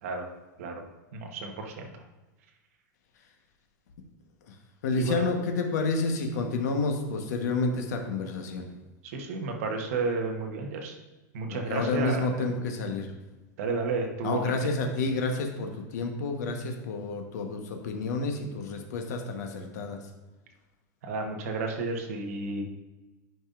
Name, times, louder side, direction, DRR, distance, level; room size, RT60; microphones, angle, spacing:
voice 1, 1.1-2.0 5.0-5.2 9.0-11.0 11.3-12.5 13.6-14.7 21.0-22.6, right 3 dB, 50° right, 3 dB, 1.1 m, -32 dB
voice 2, 4.8-8.7 11.5-13.1 14.2-20.0, left 3 dB, 65° left, 3 dB, 1.2 m, -29 dB
10.5 x 5.3 x 2.5 m, 1.1 s
supercardioid pair, 175°, 10 cm